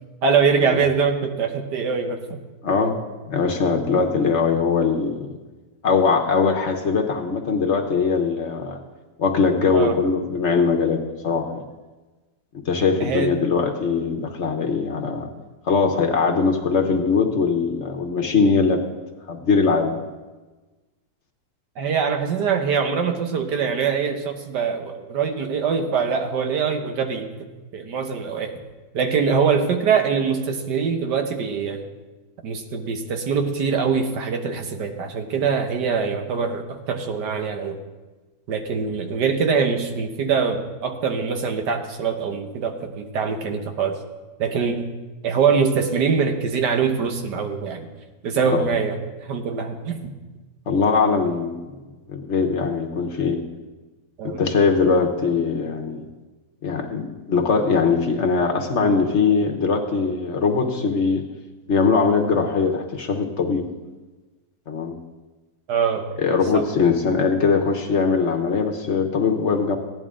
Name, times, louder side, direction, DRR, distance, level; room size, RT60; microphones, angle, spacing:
voice 1, 0.2-2.4 9.7-10.0 13.0-13.4 21.8-27.3 27.7-28.5 28.9-31.8 32.4-37.8 38.5-44.0 44.4-44.8 45.2-47.9 48.2-50.1 54.2-54.4 65.7-66.9, right 6 dB, 80° right, 5 dB, 1.7 m, -23 dB
voice 2, 2.6-2.9 3.3-5.2 5.8-8.8 9.2-11.6 12.7-15.3 15.7-18.8 19.3-19.9 48.5-48.7 50.7-51.7 52.1-53.4 54.2-56.0 56.6-61.2 61.7-63.6 64.7-64.9 66.2-69.8, left 5 dB, 50° left, 3 dB, 1.1 m, -21 dB
16.0 x 10.5 x 3.7 m, 1.2 s
omnidirectional pair, 1.8 m